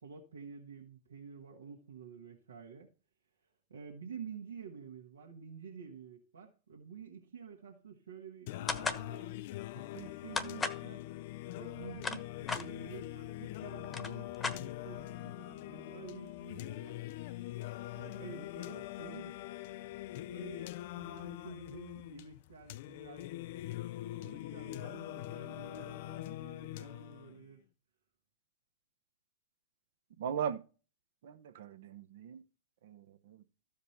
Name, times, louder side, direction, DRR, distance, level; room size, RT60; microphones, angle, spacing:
voice 1, 0.0-2.9 3.7-9.4 9.7-11.0 11.6-17.0 17.9-19.4 20.3-23.3 24.2-27.6, right 6 dB, 80° right, 1.6 m, -50 dB
Singing, 8.5-27.5, left 15 dB, 60° left, 0.4 m, -43 dB
sound 1, 8.7-9.1 10.4-10.8 11.7-12.7 13.5-13.6 13.8-15.0, left 4 dB, 20° left, 1.1 m, -36 dB
voice 2, 30.2-30.6 31.2-32.4 32.8-33.4, right 8 dB, 65° right, 0.9 m, -39 dB
14.0 x 5.2 x 4.3 m
hypercardioid pair, 100°, 0 cm